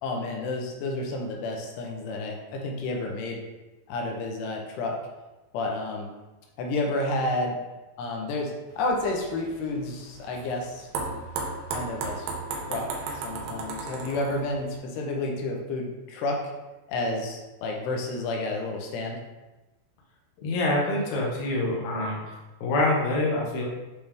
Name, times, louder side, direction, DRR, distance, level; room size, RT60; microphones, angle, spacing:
voice 1, 0.0-3.4 3.9-5.0 5.5-6.1 6.6-7.6 8.0-11.3 11.7-12.3 12.7-12.9 13.1-16.4 16.9-19.2, left 2 dB, 90° left, 0 dB, 3.0 m, -30 dB
sound 1, 8.7-14.8, right 3 dB, 85° right, 2.9 m, -35 dB
voice 2, 20.4-22.2 22.6-23.6, left 2 dB, 60° left, -3 dB, 2.1 m, -25 dB
8.5 x 3.3 x 3.5 m, 1.1 s
omnidirectional pair, 4.6 m